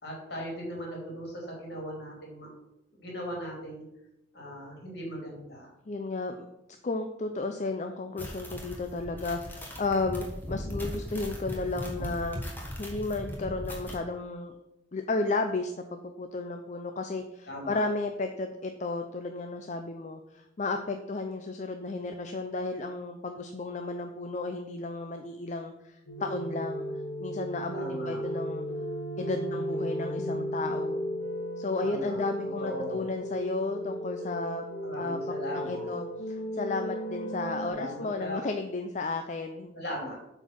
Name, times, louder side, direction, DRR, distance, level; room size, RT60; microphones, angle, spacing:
voice 1, 0.0-2.5 2.9-3.8 4.3-5.7 17.5-17.8 27.7-28.2 31.8-32.3 32.6-33.1 34.8-36.0 37.6-38.4 39.7-40.2, equal, 60° left, -2 dB, 2.9 m, -38 dB
voice 2, 5.9-6.5 6.8-12.4 12.8-14.6 14.9-26.9 27.2-28.7 29.2-31.0 31.6-34.6 35.0-35.2 35.5-39.7, left 3 dB, 40° left, 6 dB, 0.5 m, -33 dB
sound 1, 8.2-13.9, equal, 10° left, 1.4 m, -38 dB
sound 2, 26.1-37.7, equal, 85° left, 1.8 m, -35 dB
8.0 x 4.5 x 6.0 m, 0.90 s
head